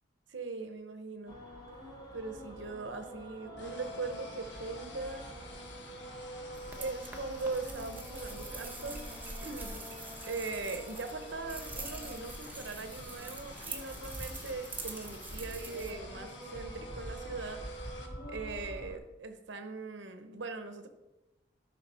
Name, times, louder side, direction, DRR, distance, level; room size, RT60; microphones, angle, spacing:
voice 1, 0.3-1.4 2.1-5.3 6.8-9.0 9.4-9.8 10.3-17.6 17.9-18.0 18.3-20.9, right 3 dB, 85° right, 7 dB, 0.9 m, -40 dB
sound 1, 1.3-19.0, right 1 dB, 25° left, 1.8 m, -46 dB
sound 2, 3.6-18.1, left 3 dB, 75° left, 1.4 m, -51 dB
sound 3, 6.5-15.9, right 3 dB, 10° right, 1.0 m, -45 dB
11.5 x 5.8 x 4.3 m, 1.0 s
head